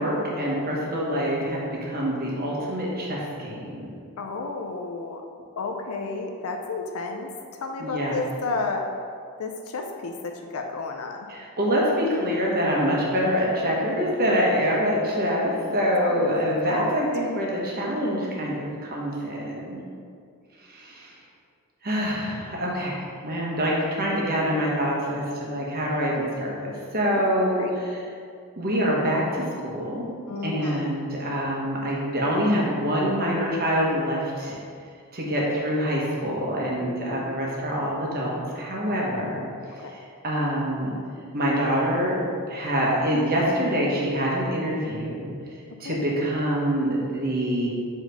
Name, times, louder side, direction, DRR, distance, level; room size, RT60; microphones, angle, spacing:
voice 1, 0.0-3.9 7.8-8.2 11.3-19.8 20.7-21.1 21.8-28.0 28.6-30.1 30.4-34.6 35.1-39.5 39.9-40.9 41.3-42.2 42.5-45.3 45.8-47.7, equal, 45° right, -4 dB, 1.3 m, -25 dB
voice 2, 4.2-5.2 5.6-7.3 7.6-8.9 9.4-11.3 15.8-16.3 16.7-17.0 27.0-27.7 30.3-30.9 36.6-37.4 39.8-40.0 45.8-46.0, left 3 dB, 70° left, 3 dB, 0.5 m, -32 dB
4.4 x 4.4 x 5.6 m, 2.3 s
head